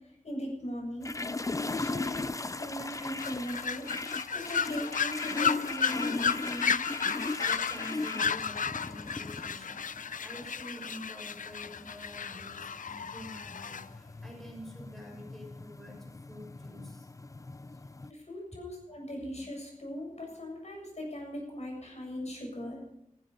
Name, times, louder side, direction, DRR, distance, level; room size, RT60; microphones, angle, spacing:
voice 1, 0.2-1.1 1.7-3.9 4.3-6.8 18.1-22.8, left 1 dB, 60° left, 0 dB, 7.3 m, -39 dB
sound 1, 1.0-18.1, left 3 dB, 25° left, 0.5 m, -39 dB
sound 2, 3.2-13.8, left 6 dB, 90° left, 0.5 m, -33 dB
voice 2, 7.4-17.1, equal, ahead, 0 dB, 6.5 m, -47 dB
16.0 x 15.5 x 5.5 m, 0.80 s
wide cardioid pair, 90°, 13 cm